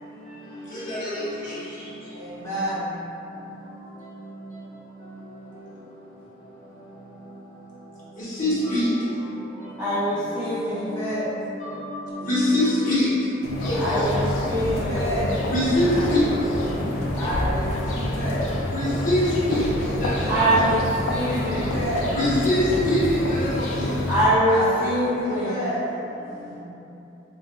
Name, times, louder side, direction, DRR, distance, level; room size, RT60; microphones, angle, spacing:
voice 1, 1.4-1.9 9.8-10.9 13.8-15.0 20.3-20.8 21.1-21.7 24.1-25.6, right 1 dB, 15° right, -12 dB, 0.4 m, -24 dB
voice 2, 2.1-2.9 10.1-11.2 12.1-12.3 13.7-15.3 15.5-16.1 17.1-18.4 20.3-20.9 21.2-22.1 24.4-26.6, equal, 15° left, -12 dB, 0.8 m, -31 dB
voice 3, 8.4-8.8 12.3-13.0 13.6-13.8 15.5-16.2 18.7-19.2 19.5-19.6 20.0-20.1 22.1-23.0 23.3-23.7, left 1 dB, 40° left, -10 dB, 0.7 m, -22 dB
sound 1, 13.4-24.3, left 1 dB, 90° left, 0.4 m, -27 dB
3.0 x 2.7 x 2.2 m, 2.9 s
head